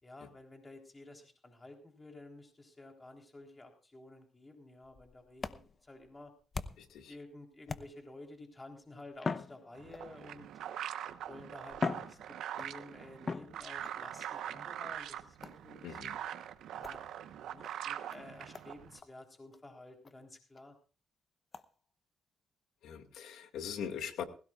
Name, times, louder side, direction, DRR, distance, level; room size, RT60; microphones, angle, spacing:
voice 1, 0.0-6.3 7.1-10.5 11.3-16.0 16.7-20.7, left 2 dB, 20° left, 3 dB, 3.7 m, -52 dB
sound 1, 4.8-7.0 7.7-8.3 9.1-10.3 11.1-11.2 11.7-12.8 13.2-14.0 15.4-15.7 16.8-17.0 17.6-17.7 18.1-18.2 18.5-18.7 19.0-19.1 19.5-19.6 20.0-20.1 20.6-20.7 21.5-21.7, left 4 dB, 35° left, 0.9 m, -40 dB
voice 2, 6.8-7.1 15.8-16.2 22.8-24.2, left 8 dB, 80° left, 7 dB, 2.1 m, -41 dB
sound 2, 9.7-19.0, right 10 dB, 80° right, 1.1 m, -43 dB
19.5 x 17.0 x 2.5 m, 0.36 s
cardioid pair, 90°, 0 cm